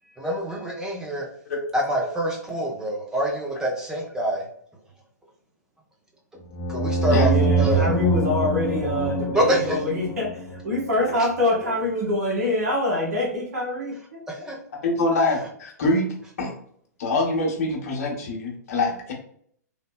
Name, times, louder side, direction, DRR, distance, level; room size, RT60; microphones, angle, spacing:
voice 1, 0.2-1.2 1.7-4.4 6.7-7.3 7.7-7.9 9.3-9.8 14.5-14.6, equal, 5° right, -2 dB, 0.8 m, -25 dB
sound 1, 6.5-11.1, right 3 dB, 25° left, 0.6 m, -24 dB
voice 2, 7.1-14.5, left 1 dB, 60° right, -4 dB, 1.4 m, -25 dB
voice 3, 14.8-16.5 17.0-19.1, left 2 dB, 55° left, -1 dB, 1.1 m, -24 dB
3.3 x 2.7 x 2.3 m, 0.64 s
figure-of-eight pair, 115°, 9 cm